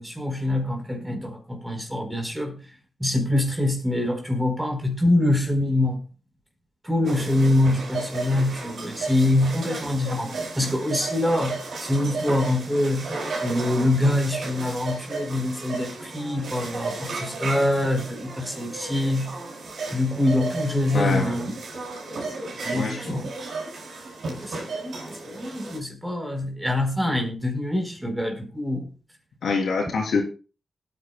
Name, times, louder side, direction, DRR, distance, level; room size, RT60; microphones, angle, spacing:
voice 1, 0.0-2.6 3.0-6.0 6.8-13.1 13.4-19.3 19.9-21.5 22.6-23.3 24.3-28.9, left 1 dB, 10° right, 4.0 m, -25 dB
sound 1, 7.0-25.8, right 3 dB, 75° right, 5.3 m, -34 dB
voice 2, 20.9-21.4 22.7-23.2 29.4-30.2, left 4 dB, 80° left, 3.4 m, -25 dB
20.0 x 9.4 x 2.2 m
cardioid pair, 65°, 0 cm